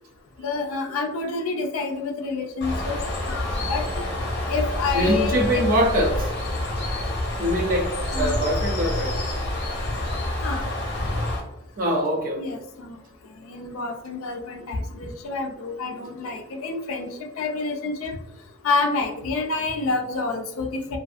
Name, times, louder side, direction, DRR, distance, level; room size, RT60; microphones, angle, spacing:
voice 1, 0.4-3.0 3.3-3.8 4.5-5.6 8.1-8.4 10.4-10.7 12.4-13.0 13.4-17.1 17.4-18.2 18.6-21.0, left 3 dB, 85° left, 2 dB, 0.4 m, -28 dB
Bird, 2.6-11.4, left 1 dB, 50° left, 0.7 m, -27 dB
voice 2, 4.9-6.3 7.4-9.2 11.8-12.6, equal, 40° right, 2 dB, 0.4 m, -23 dB
2.5 x 2.4 x 2.4 m, 0.88 s
head